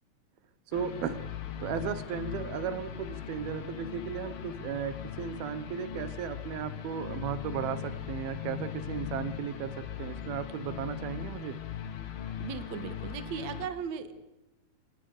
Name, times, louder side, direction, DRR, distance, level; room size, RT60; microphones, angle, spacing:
sound 1, 0.7-13.7, left 9 dB, 80° left, 3.7 m, -39 dB
voice 1, 0.7-1.3 1.6-11.6, right 8 dB, 85° right, 13 dB, 3.0 m, -35 dB
voice 2, 12.4-14.3, right 7 dB, 55° right, 10 dB, 2.6 m, -37 dB
29.5 x 18.5 x 6.7 m, 0.97 s
omnidirectional pair, 4.3 m